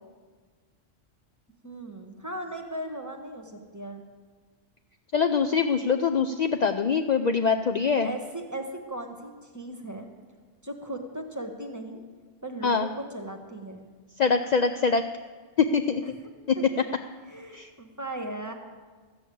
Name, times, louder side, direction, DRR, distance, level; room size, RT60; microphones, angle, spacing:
voice 1, 1.6-4.0 8.0-10.1 10.6-12.0 12.4-13.9 16.5-16.6 17.3-18.5, right 1 dB, 15° right, 4 dB, 1.2 m, -37 dB
voice 2, 5.1-8.1 12.6-12.9 14.2-15.0 15.6-16.0 17.5-17.7, left 5 dB, 65° left, 7 dB, 0.4 m, -24 dB
13.5 x 7.1 x 8.5 m, 1.5 s
omnidirectional pair, 1.3 m